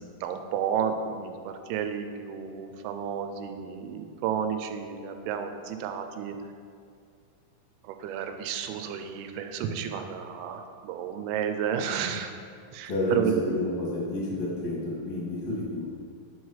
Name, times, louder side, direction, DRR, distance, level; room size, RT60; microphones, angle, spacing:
voice 1, 0.2-6.4 7.8-12.4 12.7-13.4, right 8 dB, 90° right, 7 dB, 2.5 m, -31 dB
voice 2, 12.9-15.9, left 1 dB, 55° left, -5 dB, 2.4 m, -30 dB
5.6 x 4.8 x 5.5 m, 2.3 s
omnidirectional pair, 4.4 m